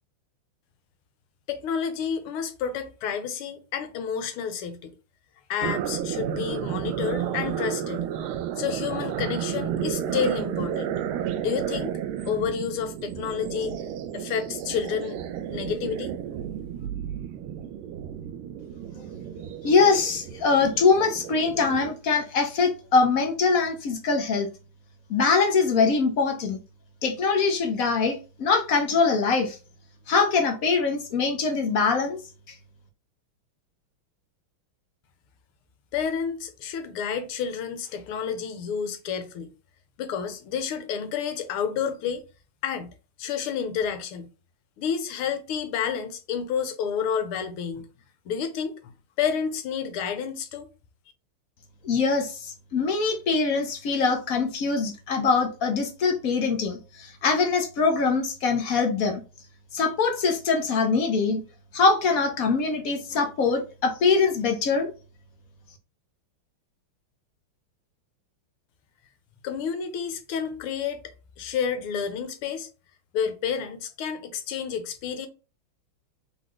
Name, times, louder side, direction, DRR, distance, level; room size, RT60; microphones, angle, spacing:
voice 1, 1.5-4.9 5.5-8.1 8.6-10.9 11.4-12.0 12.2-13.7 14.1-15.2 15.5-16.1 35.9-39.5 40.0-42.2 42.6-42.9 43.2-44.3 44.8-47.9 48.2-50.7 69.4-72.7 73.1-75.3, left 7 dB, 85° left, 1.7 m, -30 dB
sound 1, 5.6-21.9, right 9 dB, 80° right, 1.4 m, -32 dB
voice 2, 19.6-24.5 25.1-26.6 27.0-29.6 30.1-32.2 51.8-59.2 59.7-61.4 61.7-64.9, left 4 dB, 60° left, 0.9 m, -23 dB
4.0 x 3.7 x 3.1 m
omnidirectional pair, 2.4 m